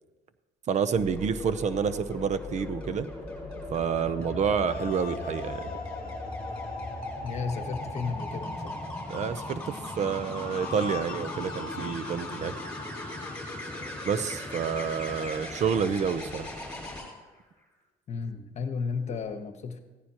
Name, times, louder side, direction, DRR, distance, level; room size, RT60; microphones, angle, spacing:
voice 1, 0.7-3.1 3.7-5.6 9.1-12.5 14.0-16.5, right 6 dB, 50° right, 13 dB, 0.7 m, -29 dB
sound 1, 0.9-17.0 18.9-19.2, left 2 dB, 10° left, 5.4 m, -38 dB
sound 2, 4.7-7.4 10.3-13.4, left 7 dB, 70° left, 0.8 m, -43 dB
voice 2, 7.2-8.8 18.1-19.8, left 5 dB, 45° left, 7 dB, 1.2 m, -33 dB
16.0 x 14.5 x 3.0 m, 1.2 s
cardioid pair, 115°, 16 cm